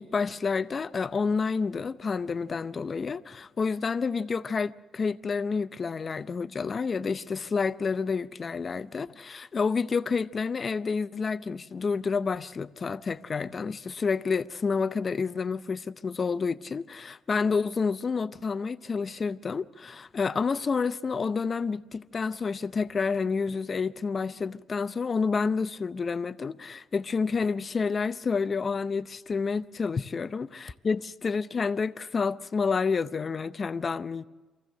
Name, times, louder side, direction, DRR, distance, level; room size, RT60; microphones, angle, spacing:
voice 1, 0.0-34.3, left 5 dB, 40° left, 0.6 m, -29 dB
24.0 x 15.0 x 7.8 m
cardioid pair, 90°, 0 cm